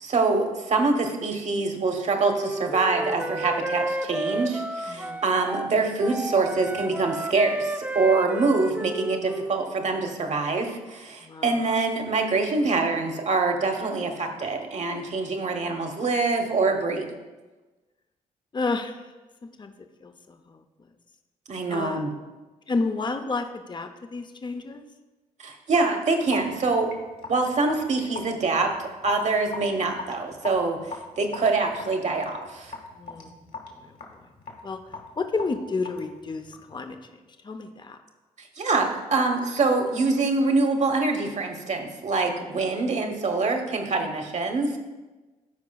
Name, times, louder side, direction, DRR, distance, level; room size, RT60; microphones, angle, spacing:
voice 1, 0.0-17.1 21.5-22.1 25.4-26.9 27.3-28.7 29.0-30.8 31.2-32.7 33.2-33.3 38.6-44.8, right 3 dB, 50° right, 4 dB, 1.2 m, -25 dB
Wind instrument woodwind instrument, 2.2-5.7 6.0-9.5, right 2 dB, 10° right, 0.4 m, -32 dB
voice 2, 4.9-5.2 11.2-11.6 18.5-19.1 19.6-19.7 20.0-20.6 21.7-22.1 22.7-24.8 33.0-33.3 33.7-34.2 34.6-34.8 35.2-38.0 42.1-42.6 44.0-44.1, left 3 dB, 30° left, 7 dB, 0.7 m, -31 dB
Raindrop / Drip, 26.3-36.8, left 3 dB, 65° left, 1.8 m, -40 dB
14.0 x 4.7 x 2.3 m, 1.2 s
supercardioid pair, 55°, 16 cm